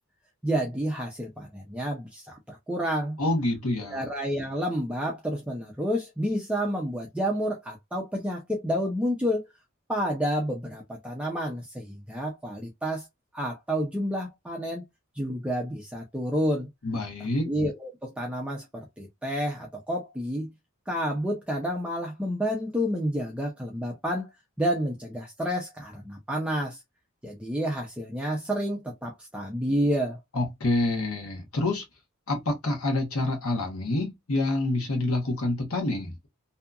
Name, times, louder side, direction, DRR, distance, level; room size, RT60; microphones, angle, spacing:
voice 1, 0.4-3.2 3.9-9.5 9.9-13.1 13.3-14.8 15.1-16.7 17.5-20.5 20.9-24.3 24.6-26.8 27.2-30.2, equal, 5° right, 0.4 m, -29 dB
voice 2, 3.2-4.1 16.8-17.5 30.3-31.8 32.3-36.3, left 2 dB, 75° left, 1.0 m, -27 dB
2.7 x 2.4 x 2.3 m
head